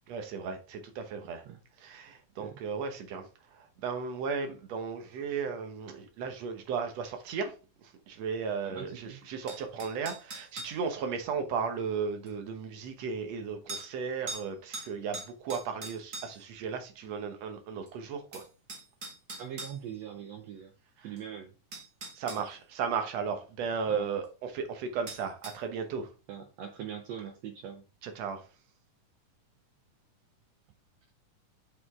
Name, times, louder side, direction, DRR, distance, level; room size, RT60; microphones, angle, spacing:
voice 1, 0.1-1.4 1.8-18.5 21.0-21.1 22.2-26.1 28.0-28.5, right 5 dB, 65° right, 1.9 m, -35 dB
voice 2, 8.6-9.2 19.4-20.7 21.0-21.5 23.9-24.1 26.3-27.8, right 9 dB, 80° right, 1.5 m, -42 dB
sound 1, 9.5-10.8 12.3-12.4 13.7-13.9 14.3-14.5 14.7-16.5 17.9-18.0 18.3-19.8 21.2-21.3 21.7-22.4 25.1-25.6, right 3 dB, 35° right, 1.5 m, -41 dB
7.9 x 5.2 x 3.6 m
omnidirectional pair, 3.8 m